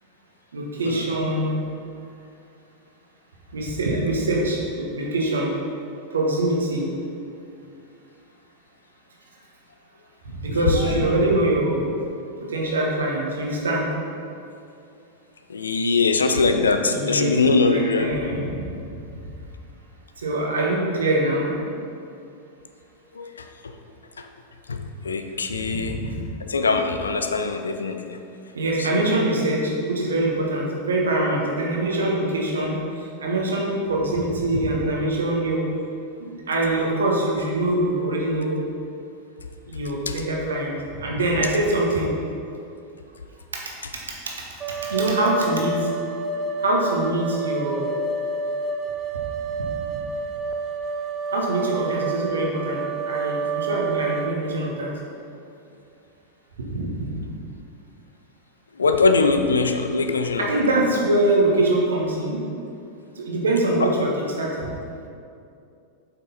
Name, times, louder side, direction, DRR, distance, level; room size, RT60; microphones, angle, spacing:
voice 1, 0.5-1.6 3.5-5.5 6.1-6.9 10.4-11.9 12.5-13.8 16.9-17.3 17.7-18.6 20.2-21.6 25.6-26.3 28.5-35.6 36.2-38.6 39.7-42.1 43.9-44.3 44.9-45.7 46.6-47.9 51.3-52.8 53.0-54.9 56.6-57.2 60.4-62.4 63.2-64.1 64.4-64.7, right 1 dB, 70° right, -2 dB, 1.4 m, -24 dB
voice 2, 10.5-11.1 15.5-18.2 23.1-23.8 24.2-24.3 24.7-26.1 26.4-28.2 28.8-29.2 40.1-40.2 58.7-60.5 63.8-63.9, left 4 dB, 70° left, 7 dB, 0.5 m, -22 dB
sound 1, 44.6-54.4, right 4 dB, 25° right, 0.6 m, -29 dB
7.3 x 5.9 x 4.1 m, 2.5 s
figure-of-eight pair, 90°, 0 cm